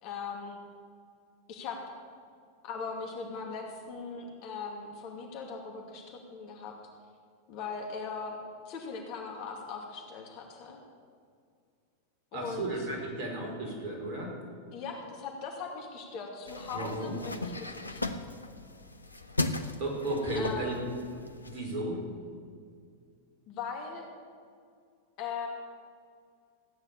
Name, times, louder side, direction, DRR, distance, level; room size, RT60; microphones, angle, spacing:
voice 1, 0.0-0.6 1.5-1.8 2.6-6.7 7.5-8.4 8.7-10.8 12.3-12.7 14.7-18.0 20.4-20.7 23.5-24.1 25.2-25.5, left 5 dB, 45° left, 1 dB, 2.4 m, -39 dB
voice 2, 12.3-14.3 16.7-17.1 19.8-20.8 21.4-22.0, right 1 dB, 40° right, -1 dB, 5.0 m, -34 dB
sound 1, 16.5-21.6, left 2 dB, 80° left, 0.8 m, -37 dB
15.5 x 9.8 x 7.2 m, 2.2 s
figure-of-eight pair, 90°, 0 cm